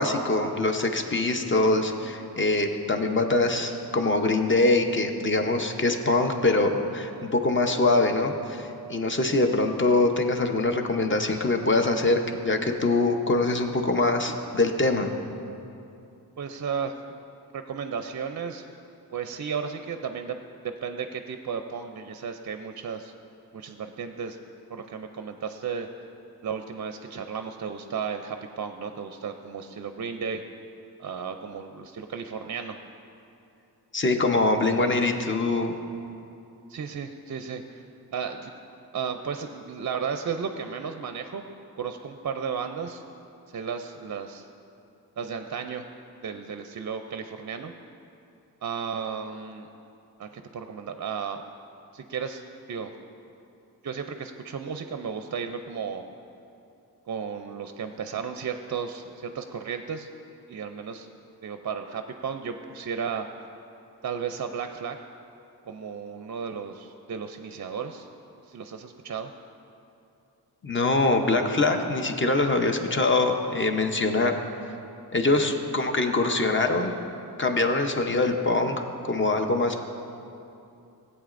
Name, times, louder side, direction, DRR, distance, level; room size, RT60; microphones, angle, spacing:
voice 1, 0.0-15.1 33.9-35.7 70.6-74.3 75.1-77.0 77.4-79.8, left 2 dB, 30° left, 5 dB, 0.8 m, -24 dB
voice 2, 16.4-16.9 17.5-18.7 19.1-20.4 20.8-23.1 23.5-24.4 24.7-25.9 26.4-30.4 31.0-32.8 36.7-37.8 38.1-38.5 38.9-41.5 41.7-43.0 43.5-44.5 45.2-45.9 46.2-47.7 48.6-49.7 50.2-51.4 51.9-52.4 52.7-52.9 53.8-56.0 57.1-60.1 60.5-61.1 61.4-63.3 64.0-65.0 65.7-68.1 68.5-69.3 75.4-75.5, right 6 dB, 50° right, 7 dB, 0.4 m, -34 dB
16.5 x 8.2 x 2.5 m, 2.8 s
wide cardioid pair, 100°, 39 cm